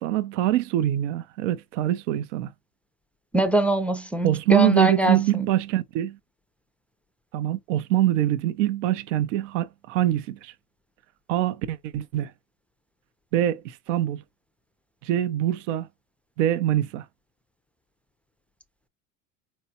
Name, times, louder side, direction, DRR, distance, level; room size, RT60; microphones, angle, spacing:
voice 1, 0.0-2.5 4.2-6.2 7.3-10.5 11.3-12.3 13.3-14.2 15.0-15.9 16.4-17.1, right 13 dB, 80° right, 0.5 m, -24 dB
voice 2, 3.3-5.5, right 1 dB, 5° left, 0.3 m, -22 dB
4.3 x 2.2 x 2.7 m
supercardioid pair, 110°, 36 cm